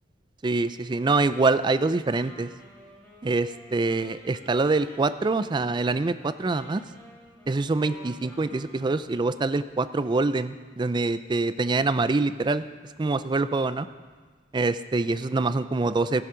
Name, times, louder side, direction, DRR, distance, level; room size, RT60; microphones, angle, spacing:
voice 1, 0.4-2.5 3.2-6.8 7.5-12.6 13.0-13.9 14.5-16.2, right 3 dB, 25° right, 13 dB, 0.4 m, -25 dB
Wind instrument woodwind instrument, 2.1-9.2, left 1 dB, 15° left, 3.6 m, -51 dB
18.0 x 7.1 x 5.0 m, 1.5 s
head